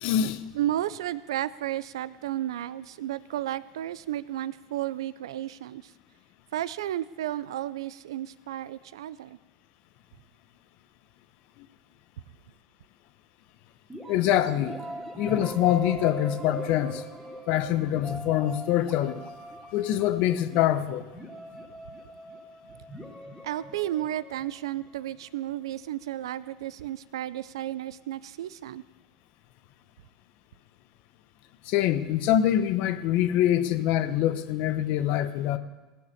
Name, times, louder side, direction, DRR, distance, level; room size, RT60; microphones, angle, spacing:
voice 1, 0.0-0.4 11.6-11.7 14.1-14.8 15.2-17.1 17.5-19.2 19.7-21.0 31.7-35.6, left 12 dB, 60° left, 11 dB, 0.9 m, -24 dB
voice 2, 0.5-5.9 6.5-9.4 23.4-28.8, right 13 dB, 85° right, 17 dB, 0.4 m, -33 dB
sound 1, 13.9-25.6, right 1 dB, 10° right, 2.6 m, -41 dB
17.0 x 6.5 x 8.4 m, 1.2 s
hypercardioid pair, 100°, 3 cm